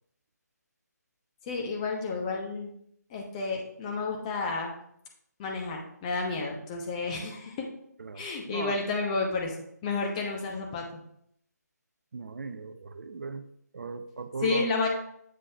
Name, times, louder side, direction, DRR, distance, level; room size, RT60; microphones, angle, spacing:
voice 1, 1.5-2.7 3.1-4.7 5.4-7.7 8.1-9.5 9.8-11.0 14.4-14.9, left 4 dB, 20° left, 0 dB, 0.9 m, -31 dB
voice 2, 8.0-8.8 12.1-13.4 13.7-14.7, right 4 dB, 55° right, 11 dB, 0.4 m, -37 dB
7.6 x 5.2 x 2.8 m, 0.70 s
figure-of-eight pair, 150°, 9 cm